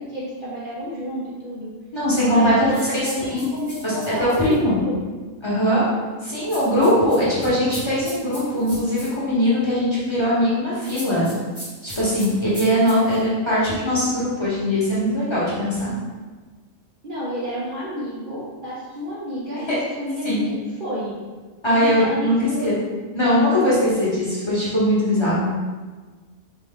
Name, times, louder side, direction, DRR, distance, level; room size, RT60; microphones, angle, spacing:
voice 1, 0.0-1.7 2.3-5.1 17.0-21.1 21.7-22.9, left 1 dB, 50° right, -7 dB, 0.7 m, -30 dB
voice 2, 1.9-3.4 3.8-4.8 5.4-5.9 6.2-11.3 11.8-16.0 20.2-20.4 21.6-22.8 23.1-25.5, equal, 20° left, -9 dB, 1.1 m, -20 dB
sound 1, 2.7-4.6 6.5-9.1 10.8-13.2, equal, 20° right, 1.1 m, -39 dB
4.4 x 2.7 x 3.7 m, 1.4 s
omnidirectional pair, 1.4 m